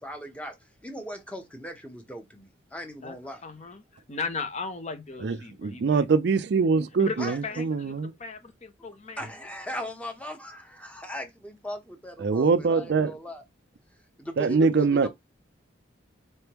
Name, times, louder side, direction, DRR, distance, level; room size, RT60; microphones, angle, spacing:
voice 1, 0.0-3.7 7.2-7.7 9.2-13.4 14.2-15.1, equal, 5° left, 0.9 m, -39 dB
voice 2, 3.4-6.0 7.0-7.9 8.2-9.2, left 4 dB, 35° left, 0.7 m, -36 dB
voice 3, 5.2-8.1 12.2-13.1 14.4-15.1, right 4 dB, 55° right, 0.4 m, -23 dB
4.4 x 3.4 x 2.9 m
head